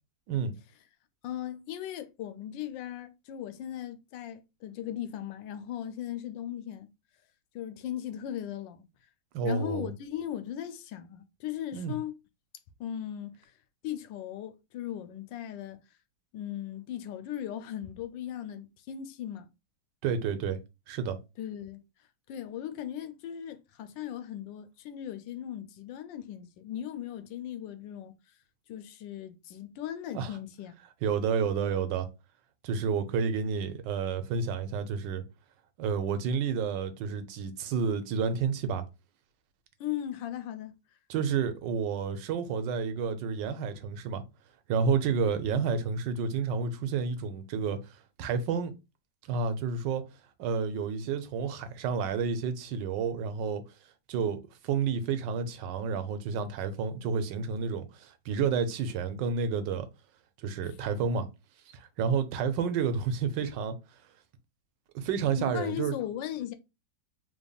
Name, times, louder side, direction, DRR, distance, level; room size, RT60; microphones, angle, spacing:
voice 1, 1.2-6.9 7.5-8.9 9.4-12.2 12.8-13.5 13.8-15.8 16.3-19.5 21.4-21.8 22.3-28.1 28.7-30.7 39.8-40.8 45.3-45.4 60.6-60.8 65.4-66.5, left 11 dB, 90° left, 1.3 m, -38 dB
voice 2, 9.3-9.9 11.7-11.9 20.0-20.6 20.9-21.2 30.1-30.3 31.0-32.1 32.6-35.2 35.8-38.8 41.1-44.2 44.7-48.7 49.3-50.0 50.4-53.7 54.1-59.9 60.4-61.3 61.7-63.8 64.9-66.0, right 6 dB, 85° right, 1.3 m, -30 dB
5.2 x 3.3 x 2.3 m
omnidirectional pair, 1.9 m